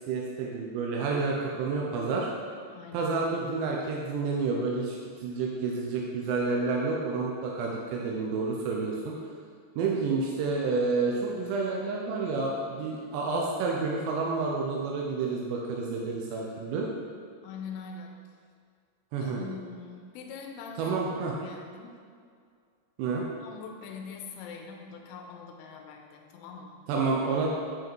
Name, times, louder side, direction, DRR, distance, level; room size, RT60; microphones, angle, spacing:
voice 1, 0.1-2.3 2.9-9.1 9.8-16.9 19.1-19.5 20.8-21.3 23.0-23.2 26.9-27.5, right 4 dB, 85° right, -2 dB, 2.5 m, -29 dB
voice 2, 2.7-3.1 17.4-18.2 19.2-21.1 21.4-22.0 23.4-26.8, left 5 dB, 85° left, 2 dB, 3.1 m, -43 dB
9.3 x 4.9 x 4.5 m, 2.1 s
omnidirectional pair, 5.9 m